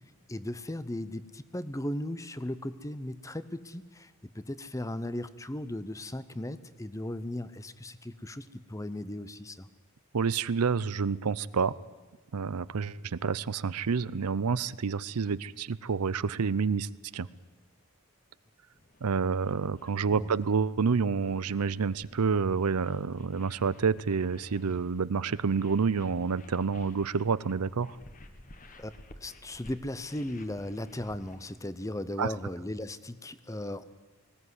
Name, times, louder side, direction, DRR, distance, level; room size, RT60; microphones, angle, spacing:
voice 1, 0.3-9.7 20.1-20.3 28.8-33.8, left 1 dB, 15° left, 14 dB, 0.7 m, -37 dB
voice 2, 10.1-11.8 12.3-17.3 19.0-28.0 32.2-32.3, right 5 dB, 85° right, 18 dB, 0.6 m, -28 dB
sound 1, 18.7-31.6, left 1 dB, 35° left, 1.4 m, -55 dB
19.5 x 17.0 x 9.7 m, 1.2 s
head